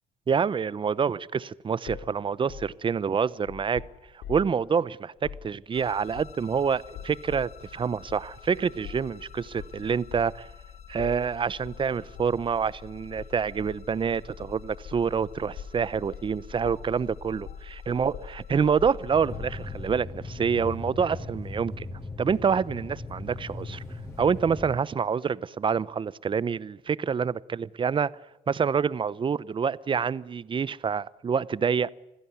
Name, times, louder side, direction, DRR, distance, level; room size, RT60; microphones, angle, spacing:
voice 1, 0.3-3.8 4.3-10.5 10.9-21.9 22.2-23.8 24.2-28.1 28.5-31.9, right 6 dB, 30° right, 0.9 m, -27 dB
sound 1, 1.9-4.6 5.2-5.5 6.2-6.6 6.9-7.6 8.1-8.3 8.8-9.2 9.6-10.4 11.0-11.3 11.6-11.9 12.2-12.4 13.2-13.8 14.4-15.2 15.6-15.8 16.1-16.3 16.6-17.0 17.5-17.7 18.1-19.8, left 8 dB, 80° left, 3.9 m, -43 dB
sound 2, 5.7-20.0, left 8 dB, 40° left, 1.7 m, -46 dB
sound 3, 19.1-24.7, left 2 dB, 15° left, 6.8 m, -38 dB
26.5 x 16.0 x 9.5 m
cardioid pair, 110°, 17 cm